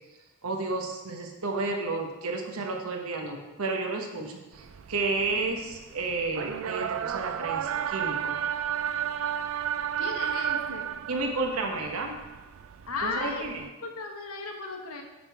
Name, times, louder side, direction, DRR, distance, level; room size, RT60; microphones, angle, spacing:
voice 1, 0.4-8.4 11.1-12.2 13.0-13.6, right 3 dB, 85° right, 2 dB, 1.1 m, -31 dB
sound 1, 4.5-13.7, right 9 dB, 65° right, 0.3 m, -33 dB
voice 2, 10.0-10.9 12.9-13.4 13.8-15.0, left 3 dB, 90° left, 3 dB, 1.1 m, -35 dB
10.0 x 3.7 x 4.7 m, 1.2 s
head